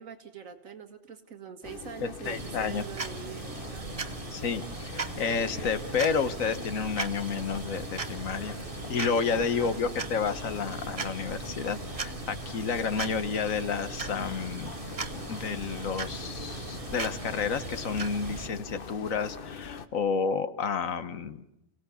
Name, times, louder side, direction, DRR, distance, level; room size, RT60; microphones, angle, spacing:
voice 1, 0.0-4.2 9.3-9.8, right 7 dB, 85° right, 7 dB, 2.1 m, -44 dB
sound 1, 1.6-19.9, left 5 dB, 45° left, 1.1 m, -43 dB
voice 2, 2.0-2.9 4.3-8.5 8.9-14.8 15.3-21.4, left 5 dB, 85° left, 12 dB, 1.6 m, -30 dB
sound 2, 2.2-18.5, right 5 dB, 30° right, 0.9 m, -39 dB
30.0 x 17.5 x 7.0 m, 0.89 s
omnidirectional pair, 1.4 m